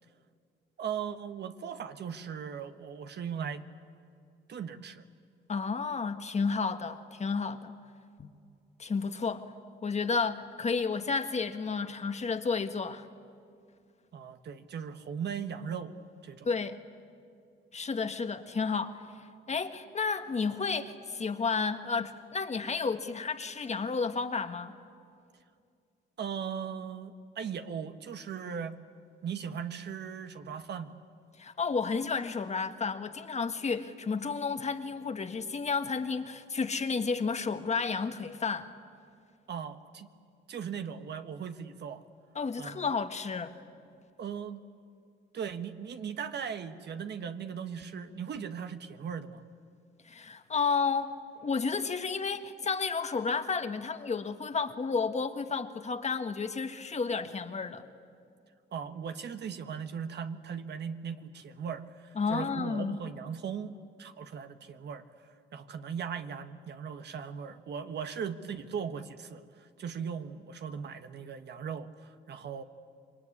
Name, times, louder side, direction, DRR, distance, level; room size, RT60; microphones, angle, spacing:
voice 1, 0.8-3.6 4.5-5.1 14.1-16.5 26.2-28.8 29.2-31.0 39.5-40.1 40.5-42.0 42.6-42.9 44.2-44.6 45.3-49.4 58.7-63.7 64.0-72.6, right 7 dB, 60° right, 8 dB, 1.5 m, -38 dB
voice 2, 5.5-7.7 8.2-8.3 8.8-9.4 9.8-13.1 16.4-16.8 17.7-19.0 19.5-24.7 31.4-38.7 42.3-43.5 50.0-51.1 51.4-57.8 62.1-63.0, left 5 dB, 35° left, 8 dB, 1.6 m, -31 dB
27.0 x 22.5 x 9.8 m, 2.3 s
cardioid pair, 90°, 20 cm